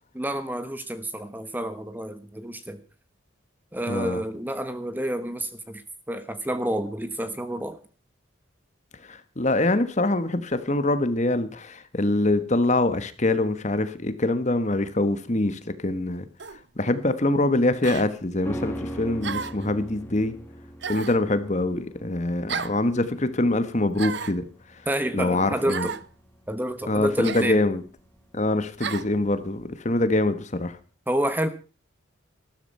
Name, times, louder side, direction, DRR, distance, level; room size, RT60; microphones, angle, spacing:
voice 1, 0.1-2.8 3.7-5.8 6.1-7.8 24.9-26.0 26.5-27.6 31.1-31.5, right 1 dB, 10° right, 11 dB, 1.1 m, -29 dB
voice 2, 3.9-4.2 9.0-16.3 16.8-20.3 20.9-24.5 25.1-25.9 26.9-27.8 28.3-30.8, left 2 dB, 35° left, 12 dB, 1.3 m, -24 dB
sound 1, 16.4-16.6 17.8-18.1 19.2-19.7 20.8-21.2 22.5-22.8 23.9-24.4 25.7-26.1 27.2-27.5 28.8-29.1, right 6 dB, 55° right, 0.7 m, -33 dB
sound 2, 18.4-27.8 28.1-28.2, equal, 10° left, 1.6 m, -40 dB
13.5 x 13.0 x 5.4 m, 0.37 s
head